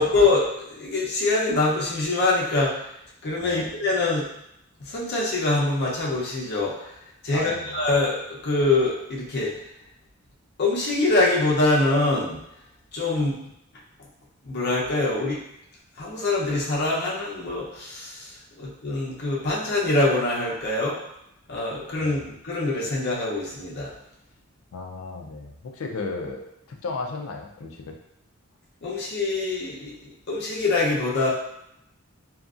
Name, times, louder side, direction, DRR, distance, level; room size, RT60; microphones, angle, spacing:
voice 1, 0.0-2.8 3.2-4.3 4.8-7.0 7.2-9.7 10.6-12.4 12.9-13.3 14.4-15.4 16.0-21.0 21.5-22.2 22.4-23.9 28.8-30.0 30.3-31.3, left 2 dB, 55° left, -5 dB, 0.7 m, -24 dB
voice 2, 7.3-7.8 13.1-13.2 22.0-22.2 24.7-26.4 26.7-28.0, left 3 dB, 90° left, 3 dB, 0.4 m, -34 dB
2.8 x 2.5 x 2.4 m, 0.79 s
head